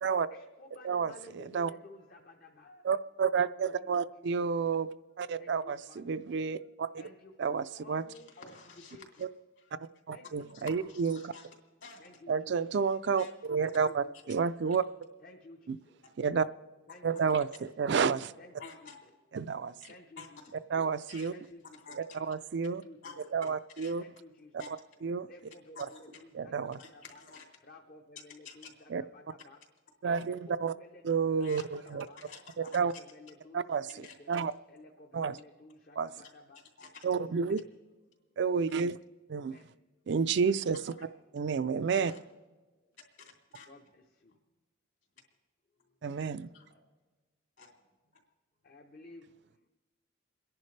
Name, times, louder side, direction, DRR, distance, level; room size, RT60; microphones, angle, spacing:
voice 1, 0.3-2.8 3.7-4.5 5.4-6.0 6.9-9.2 10.1-10.7 12.0-12.5 13.6-14.1 15.2-16.2 16.9-17.2 18.4-19.1 19.9-20.4 21.3-21.8 22.8-23.1 24.0-24.5 25.2-27.2 27.6-29.6 30.0-32.2 32.6-34.3 34.7-36.6 37.1-37.6 39.3-39.8 43.7-44.4 45.8-46.2 46.6-46.7 48.6-49.7, left 2 dB, 45° left, 3 dB, 0.7 m, -54 dB
voice 2, 0.8-1.7 2.8-4.9 5.2-6.9 7.4-8.0 10.1-11.3 12.3-14.8 15.7-15.8 16.2-16.5 17.0-18.3 19.3-19.7 20.7-21.3 22.3-22.8 23.3-24.0 25.0-25.3 26.3-26.8 28.9-29.0 30.0-30.7 31.0-32.1 32.7-32.9 33.5-34.5 35.1-35.4 36.0-36.1 37.0-37.6 38.4-39.0 39.3-39.6 40.1-40.8 41.3-42.1 46.0-46.5, right 5 dB, 55° right, 13 dB, 0.4 m, -30 dB
voice 3, 8.1-9.2 9.6-9.7 10.5-11.5 11.8-12.0 13.2-13.3 14.7-14.8 17.1-17.4 18.6-19.0 19.8-20.6 21.1-21.3 21.7-22.2 23.0-23.9 24.6-24.7 25.7-26.2 26.8-27.4 28.1-28.7 31.4-32.8 34.0-34.1 36.5-36.9 40.9-41.0 41.9-42.2 43.2-43.7 46.5-46.8 47.6-47.7, left 5 dB, 60° left, 0 dB, 2.9 m, -51 dB
29.0 x 10.5 x 3.2 m, 1.2 s
head